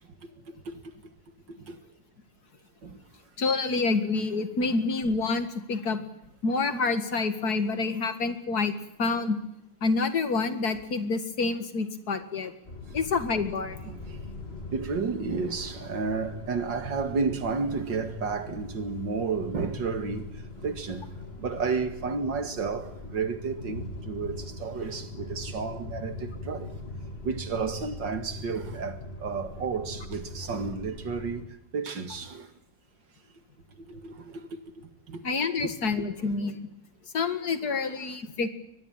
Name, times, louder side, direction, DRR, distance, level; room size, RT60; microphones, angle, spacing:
voice 1, 0.5-0.8 1.5-1.8 2.8-3.0 12.9-13.0 13.8-14.2 14.7-21.1 21.4-26.7 27.2-31.4 31.7-32.5 33.8-34.5 34.8-35.2 35.6-35.7, right 4 dB, 70° right, 2.7 m, -32 dB
voice 2, 3.4-6.0 6.4-9.4 9.8-12.5 12.9-13.8 35.2-36.6 37.1-38.5, left 4 dB, 55° left, 2.4 m, -27 dB
sound 1, 12.7-31.4, left 2 dB, 30° left, 2.9 m, -41 dB
23.5 x 19.5 x 9.0 m
omnidirectional pair, 2.0 m